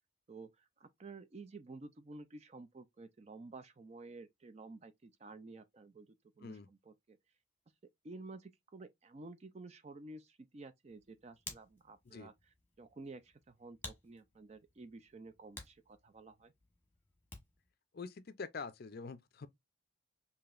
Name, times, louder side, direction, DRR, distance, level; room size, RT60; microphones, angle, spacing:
voice 1, 0.3-7.2 8.0-12.3 12.8-16.5, right 3 dB, 30° right, 0.4 m, -52 dB
Hands, 10.8-17.7, left 3 dB, 10° left, 1.1 m, -54 dB
voice 2, 17.9-19.5, left 4 dB, 45° left, 0.4 m, -45 dB
4.9 x 2.7 x 2.4 m
head